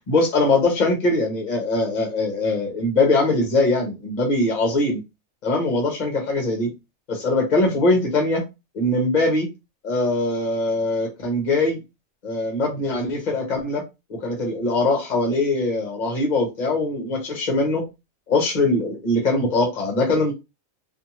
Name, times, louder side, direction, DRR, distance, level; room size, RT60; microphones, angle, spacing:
voice 1, 0.1-5.0 5.4-6.7 7.1-8.4 8.7-9.5 9.8-11.8 12.2-13.8 14.1-17.8 18.3-20.3, left 2 dB, 35° left, 1.0 m, -22 dB
2.6 x 2.6 x 2.8 m
omnidirectional pair, 1.4 m